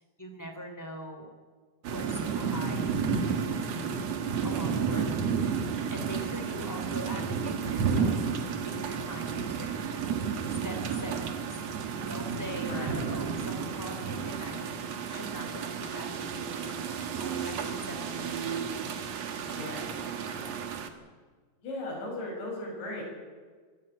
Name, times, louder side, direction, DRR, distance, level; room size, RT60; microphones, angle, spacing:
voice 1, 0.2-1.3 1.8-2.9 3.1-3.9 4.4-5.2 5.7-8.2 8.4-10.1 10.5-11.6 12.1-14.6 15.1-16.8 17.1-18.3, equal, 5° left, 4 dB, 1.9 m, -42 dB
sound 1, 1.8-20.9, right 6 dB, 80° right, 1.4 m, -32 dB
voice 2, 12.6-13.0 19.4-20.5 21.6-23.0, left 2 dB, 70° left, -2 dB, 9.5 m, -38 dB
23.5 x 14.5 x 8.9 m, 1.5 s
omnidirectional pair, 5.4 m